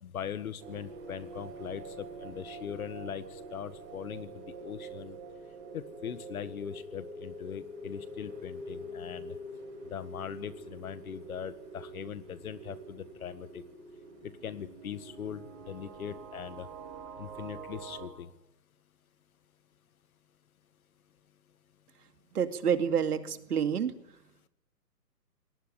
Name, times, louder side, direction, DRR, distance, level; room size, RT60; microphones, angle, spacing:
voice 1, 0.0-5.2 5.7-9.3 9.9-13.6 14.2-16.7 17.2-18.3, left 8 dB, 60° left, 14 dB, 1.8 m, -41 dB
sound 1, 0.6-18.1, right 2 dB, 35° right, 7.5 m, -45 dB
voice 2, 22.3-23.9, right 7 dB, 70° right, 9 dB, 2.4 m, -28 dB
22.5 x 19.0 x 9.9 m, 0.86 s
hypercardioid pair, 150°, 48 cm